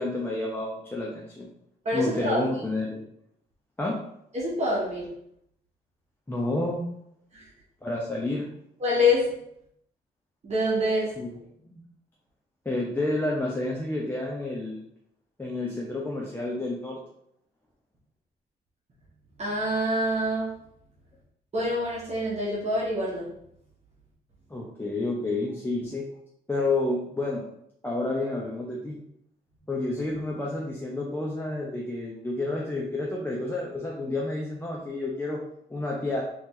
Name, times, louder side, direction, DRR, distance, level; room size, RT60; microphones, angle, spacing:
voice 1, 0.0-1.5 1.9-3.0 3.8-4.0 6.3-6.9 7.8-8.5 11.2-11.8 12.6-14.8 15.4-17.0 24.5-26.1 26.5-27.5 27.8-29.0 29.7-35.4 35.7-36.2, left 2 dB, 10° left, -3 dB, 0.7 m, -30 dB
voice 2, 1.8-2.4 4.3-5.1 7.3-7.4 8.8-9.3 10.4-11.2 19.4-20.5 21.5-23.3, left 1 dB, 40° right, -6 dB, 1.3 m, -26 dB
3.8 x 3.1 x 3.7 m, 0.73 s
cardioid pair, 105°, 17 cm